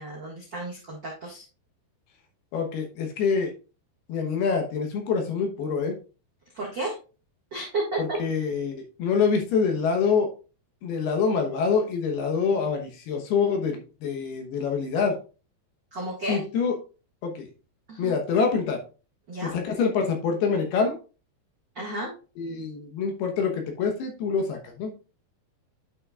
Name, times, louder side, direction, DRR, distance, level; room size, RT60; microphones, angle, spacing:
voice 1, 0.0-1.4 6.5-6.9 7.5-8.2 15.9-16.4 17.9-18.1 19.3-19.6 21.7-22.1, right 2 dB, 65° right, -4 dB, 1.1 m, -32 dB
voice 2, 2.5-3.5 4.1-5.9 8.0-10.3 10.8-15.2 16.3-16.8 17.2-17.5 18.0-18.8 19.4-21.0 22.4-24.9, left 5 dB, 70° left, 3 dB, 2.8 m, -26 dB
11.0 x 5.9 x 2.4 m, 0.34 s
omnidirectional pair, 5.3 m